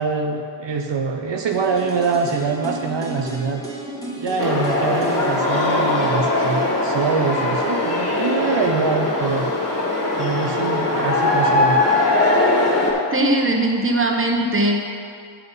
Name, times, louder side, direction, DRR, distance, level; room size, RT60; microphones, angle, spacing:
voice 1, 0.0-3.6 4.2-9.5 10.2-11.8, right 5 dB, 75° right, 3 dB, 0.7 m, -24 dB
sound 1, 1.5-7.4 7.7-7.8, left 1 dB, 10° left, 1.2 m, -34 dB
sound 2, 4.4-12.9, left 2 dB, 35° left, 1.7 m, -20 dB
voice 2, 13.1-14.8, right 1 dB, 30° right, 1 dB, 1.0 m, -19 dB
7.7 x 5.7 x 5.5 m, 2.4 s
wide cardioid pair, 65°, 44 cm